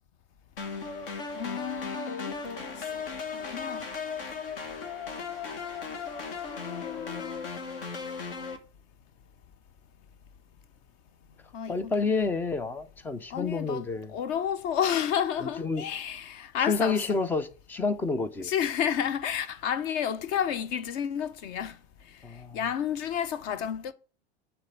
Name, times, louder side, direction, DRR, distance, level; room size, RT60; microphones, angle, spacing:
sound 1, 0.6-8.6, left 5 dB, 55° left, 1.4 m, -36 dB
voice 1, 1.3-3.0 3.3-3.9 6.5-7.5 11.5-12.2 13.3-13.9 14.1-17.0 18.4-21.8 22.1-22.2 22.5-23.9, left 8 dB, 35° left, 0.7 m, -31 dB
voice 2, 11.7-14.1 15.4-15.8 16.7-18.5 22.2-22.6, left 4 dB, 5° left, 0.3 m, -29 dB
9.6 x 3.4 x 6.8 m
figure-of-eight pair, 90°, 33 cm